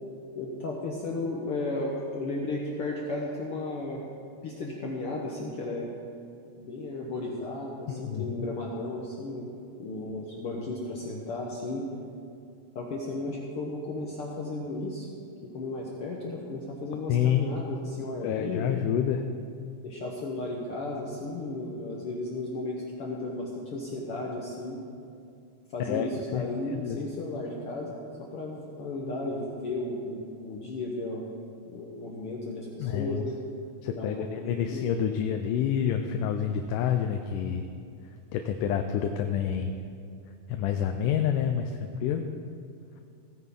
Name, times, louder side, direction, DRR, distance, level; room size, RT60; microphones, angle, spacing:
voice 1, 0.3-4.0 4.4-5.9 6.6-9.5 9.8-11.9 12.7-15.1 15.4-18.8 19.8-24.8 25.7-31.2 31.7-33.4 33.9-34.9, left 2 dB, 65° left, -2 dB, 1.4 m, -34 dB
voice 2, 7.9-8.3 17.1-17.5 18.2-19.2 25.9-26.4 26.7-27.0 32.8-33.2 33.8-37.6 38.3-39.7 40.5-42.2, left 9 dB, 80° left, 6 dB, 2.1 m, -28 dB
16.5 x 9.7 x 3.7 m, 2.4 s
omnidirectional pair, 3.8 m